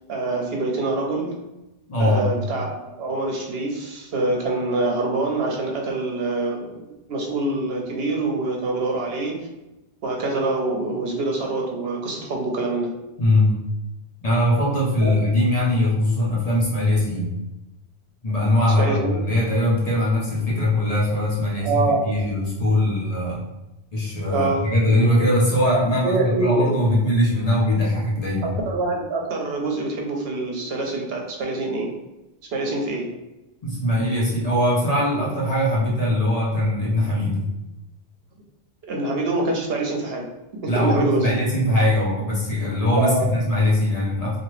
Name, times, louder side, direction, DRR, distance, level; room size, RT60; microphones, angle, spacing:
voice 1, 0.1-1.3 2.0-9.4 10.0-12.9 15.0-15.2 18.8-19.3 21.6-22.1 24.3-24.6 26.0-26.8 28.4-31.9 32.5-33.1 38.8-40.2 40.6-41.3 42.9-43.3, right 2 dB, 70° right, 0 dB, 0.8 m, -25 dB
voice 2, 1.9-2.3 13.2-13.5 14.2-17.3 18.2-23.4 23.9-28.5 33.6-37.5 40.7-44.4, left 1 dB, 40° left, -6 dB, 0.7 m, -21 dB
2.8 x 2.4 x 3.1 m, 0.98 s
omnidirectional pair, 1.1 m